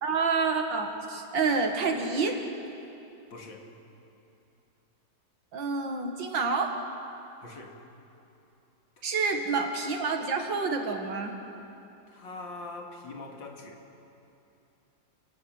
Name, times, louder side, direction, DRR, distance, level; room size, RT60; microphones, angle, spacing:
voice 1, 0.0-2.4 5.5-6.8 9.0-11.3, right 4 dB, 80° right, 4 dB, 2.7 m, -28 dB
voice 2, 3.3-3.7 7.4-7.9 9.0-9.4 12.1-13.8, left 3 dB, 85° left, 1 dB, 3.0 m, -43 dB
29.5 x 16.5 x 7.9 m, 2.8 s
omnidirectional pair, 2.0 m